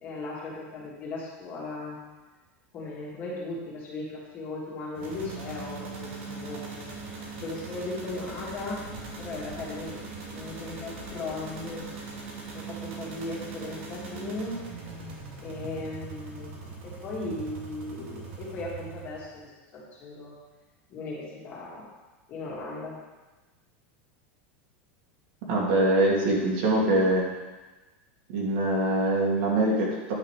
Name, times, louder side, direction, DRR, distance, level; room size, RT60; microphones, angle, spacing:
voice 1, 0.0-2.0 2.7-6.9 7.4-8.8 9.2-10.0 10.3-11.9 12.5-14.6 15.4-20.3 20.9-21.9 22.3-22.9, left 2 dB, 30° left, -5 dB, 2.4 m, -37 dB
sound 1, 5.0-19.5, right 3 dB, 80° right, 2.4 m, -40 dB
voice 2, 25.5-27.3 28.3-30.1, right 1 dB, 55° right, -3 dB, 2.4 m, -23 dB
9.9 x 5.6 x 5.0 m, 1.2 s
supercardioid pair, 165°, 7 cm